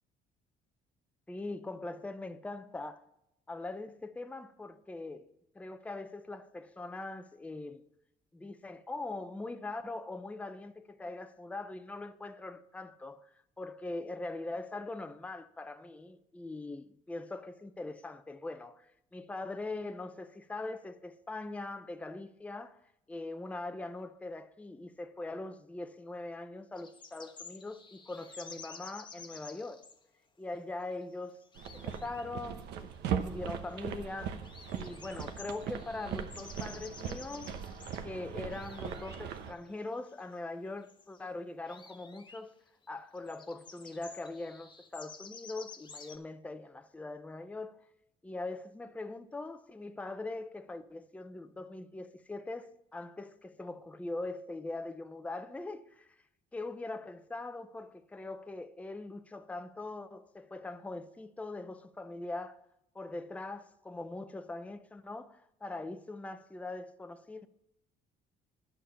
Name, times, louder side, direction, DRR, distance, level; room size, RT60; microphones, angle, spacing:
voice 1, 1.3-3.0 3.5-5.3 5.5-7.8 8.3-13.3 13.6-22.8 23.1-29.9 30.4-31.4 31.7-32.9 33.2-34.4 34.7-37.5 38.0-42.6 42.9-47.7 48.2-56.2 56.5-62.6 62.9-67.5, left 2 dB, 10° left, 0.6 m, -42 dB
sound 1, 26.7-30.0 31.0-31.1 31.3-32.2 32.6-32.7 32.9-33.0 33.5-34.1 34.4-38.1 38.4-39.2 39.5-40.4 40.7-41.2 41.7-42.4 42.8-42.9 43.1-46.2, left 5 dB, 25° left, 1.1 m, -52 dB
sound 2, 31.6-39.5, right 8 dB, 80° right, 1.0 m, -39 dB
10.0 x 6.7 x 5.7 m
cardioid pair, 110°, 17 cm